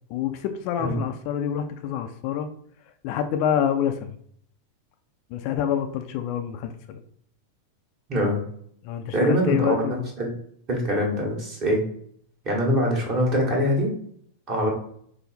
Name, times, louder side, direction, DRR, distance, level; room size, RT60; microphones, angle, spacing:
voice 1, 0.1-2.5 3.0-4.1 5.3-7.0 8.8-10.1, left 9 dB, 45° left, 7 dB, 0.4 m, -27 dB
voice 2, 8.1-8.4 9.1-10.3 10.7-11.8 12.4-13.9 14.5-14.7, equal, 35° right, 0 dB, 1.5 m, -23 dB
5.1 x 2.1 x 4.1 m, 0.63 s
figure-of-eight pair, 90°, 0 cm